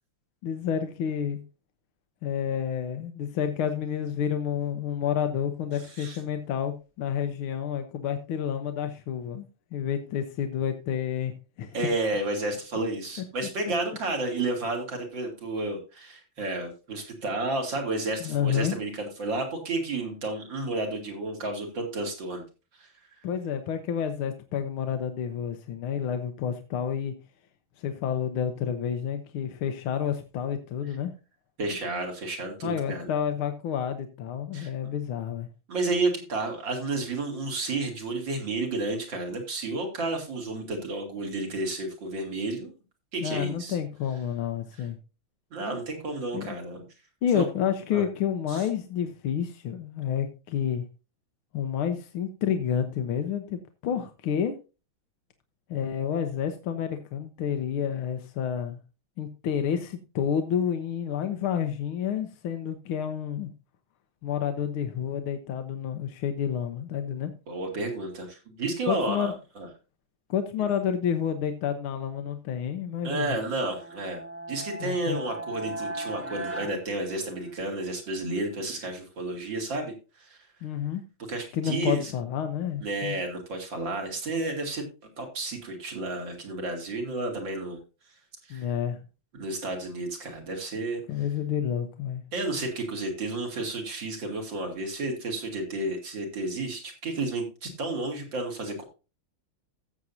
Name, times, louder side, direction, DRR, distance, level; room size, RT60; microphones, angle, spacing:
voice 1, 0.4-1.4 2.2-9.5 9.7-11.3 11.6-11.7 18.2-18.7 23.2-27.1 27.8-31.1 32.6-35.5 43.2-45.0 46.3-46.5 47.2-50.8 51.5-54.5 55.7-58.8 59.2-63.5 64.2-67.3 68.9-69.3 70.3-73.4 74.8-75.2 80.6-81.0 81.5-83.1 88.5-89.0 91.1-92.2, left 8 dB, 80° left, 7 dB, 1.7 m, -29 dB
voice 2, 5.8-6.2 11.7-22.4 22.8-22.9 31.6-33.1 34.5-34.7 35.7-42.7 43.1-43.8 45.5-46.8 47.3-47.5 47.9-48.0 48.5-48.6 67.5-69.7 73.0-74.2 74.5-80.4 81.3-82.1 82.8-84.8 85.2-87.8 88.4-88.7 89.3-91.0 92.3-98.8, right 2 dB, 60° right, 2 dB, 3.2 m, -31 dB
sound 1, 73.5-77.8, right 1 dB, 15° right, 0.5 m, -38 dB
15.5 x 7.3 x 2.7 m, 0.30 s
omnidirectional pair, 2.3 m